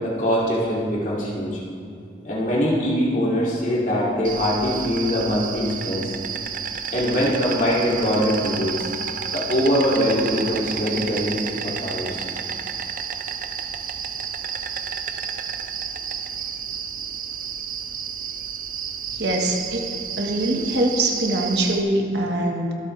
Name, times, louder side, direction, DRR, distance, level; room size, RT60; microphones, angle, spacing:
voice 1, 0.0-1.6 2.2-6.1 6.9-8.9 9.3-12.2, equal, 45° left, -6 dB, 2.9 m, -23 dB
Insect, 4.2-21.8, right 7 dB, 45° right, 0.6 m, -31 dB
voice 2, 19.1-19.9 20.2-22.7, right 1 dB, 65° right, 1 dB, 1.6 m, -23 dB
23.5 x 8.4 x 3.4 m, 2.4 s
head